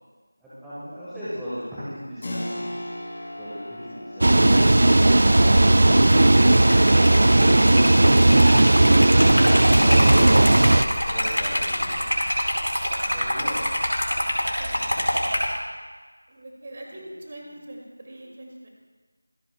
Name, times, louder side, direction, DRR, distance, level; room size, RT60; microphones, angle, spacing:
voice 1, 0.4-2.7 3.4-4.6 5.2-6.5 9.2-12.1 13.1-13.6 17.0-17.1, equal, ahead, -16 dB, 1.3 m, -36 dB
Keyboard (musical), 2.2-12.6, left 1 dB, 30° left, 2.3 m, -40 dB
sound 1, 4.2-10.8, right 1 dB, 45° right, 0.4 m, -16 dB
Liquid, 6.0-15.6, equal, 75° left, 4.1 m, -26 dB
voice 2, 14.6-15.4 16.3-18.7, right 1 dB, 30° right, -1 dB, 2.2 m, -43 dB
24.5 x 11.0 x 2.2 m, 1.4 s
figure-of-eight pair, 170°, 0 cm